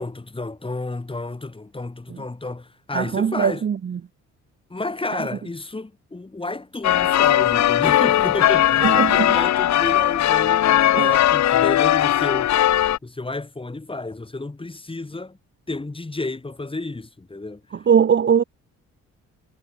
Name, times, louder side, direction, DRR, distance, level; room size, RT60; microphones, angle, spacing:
voice 1, 0.0-3.6 4.7-12.5 13.0-15.4 15.7-17.6, left 2 dB, 15° left, 6.0 m, -31 dB
voice 2, 2.9-4.0 8.8-9.3 11.0-11.1 17.9-18.4, right 7 dB, 40° right, 1.1 m, -20 dB
sound 1, 6.8-13.0, left 12 dB, 65° left, 1.2 m, -18 dB
cardioid pair, 90°, 30 cm